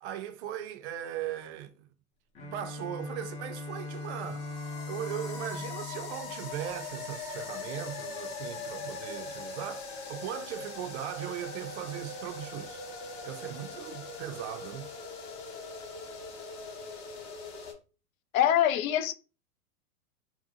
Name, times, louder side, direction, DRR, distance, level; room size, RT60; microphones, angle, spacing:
voice 1, 0.0-1.9 2.5-4.5 4.9-12.8 13.2-14.9, right 11 dB, 50° right, 0.5 m, -38 dB
Bowed string instrument, 2.3-7.2, left 3 dB, 15° left, 0.4 m, -41 dB
sound 1, 3.1-17.7, left 3 dB, 40° left, 0.8 m, -41 dB
voice 2, 18.3-19.1, left 10 dB, 70° left, 0.5 m, -24 dB
2.7 x 2.2 x 2.7 m
hypercardioid pair, 110°, 43 cm